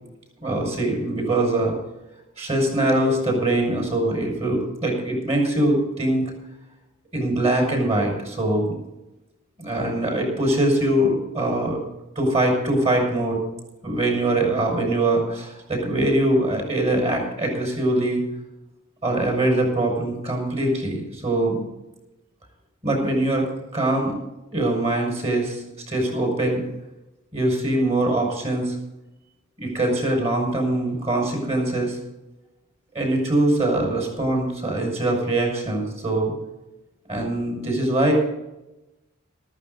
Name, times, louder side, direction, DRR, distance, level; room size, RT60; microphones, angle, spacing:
voice 1, 0.4-1.7 2.4-6.3 7.1-8.7 9.6-11.8 12.2-13.4 13.8-18.2 19.0-21.6 22.8-23.5 23.7-24.2 24.5-26.6 27.3-28.8 29.6-32.0 32.9-36.3 37.1-38.1, right 1 dB, 30° right, 0 dB, 5.6 m, -22 dB
14.0 x 13.5 x 4.0 m, 0.95 s
head